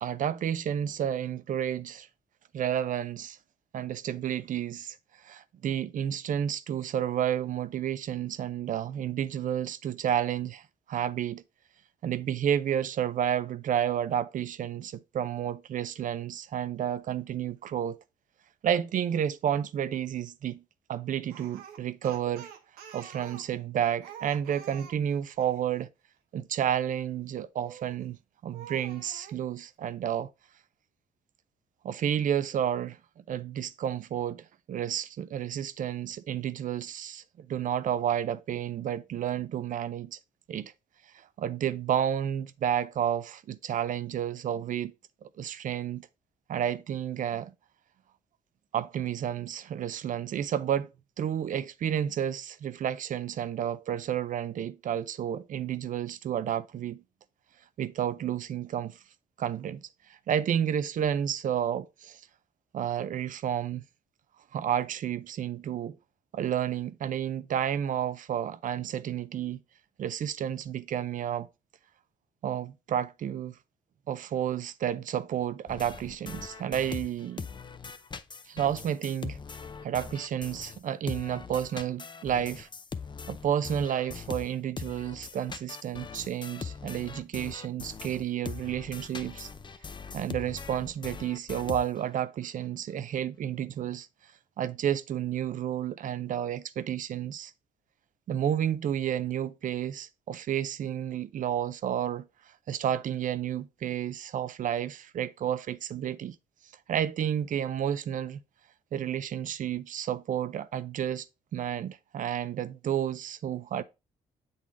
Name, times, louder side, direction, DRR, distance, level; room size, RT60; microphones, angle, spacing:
voice 1, 0.0-2.1 2.5-3.4 3.7-11.4 12.0-18.0 18.6-20.6 20.9-22.5 22.9-25.9 26.3-28.2 28.4-30.3 31.8-33.0 33.3-40.2 40.5-40.7 41.4-44.9 45.2-46.1 46.5-47.5 48.7-50.9 51.2-57.0 57.8-59.0 59.4-59.9 60.3-62.2 62.7-63.8 64.5-66.0 66.3-69.6 70.0-71.5 72.4-73.6 74.1-77.5 78.5-79.4 79.8-82.7 83.3-89.5 90.1-94.1 94.6-97.5 98.3-102.3 102.7-106.4 106.9-108.4 108.9-111.3 111.5-113.8, right 10 dB, 55° right, 0.5 m, -31 dB
Speech, 21.3-25.6 27.6-28.1 28.5-29.4, right 8 dB, 85° right, 0.9 m, -47 dB
sound 1, 75.7-80.8 81.1-92.2, left 5 dB, 30° left, 0.6 m, -41 dB
7.2 x 4.0 x 3.5 m
supercardioid pair, 60°, 16 cm